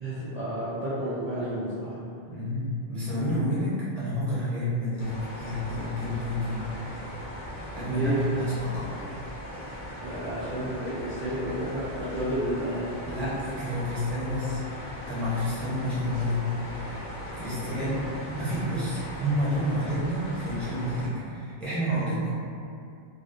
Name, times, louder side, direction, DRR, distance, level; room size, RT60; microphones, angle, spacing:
voice 1, 0.0-1.9 7.8-8.3 10.0-13.0 17.5-17.8, right 1 dB, 55° right, -12 dB, 0.5 m, -31 dB
voice 2, 2.3-6.7 7.7-9.0 13.0-14.6 15.1-16.4 16.7-17.0 17.4-22.3, equal, ahead, -11 dB, 0.4 m, -29 dB
sound 1, 5.0-21.1, equal, 50° left, 0.5 m, -39 dB
2.4 x 2.1 x 2.4 m, 2.4 s
omnidirectional pair, 1.1 m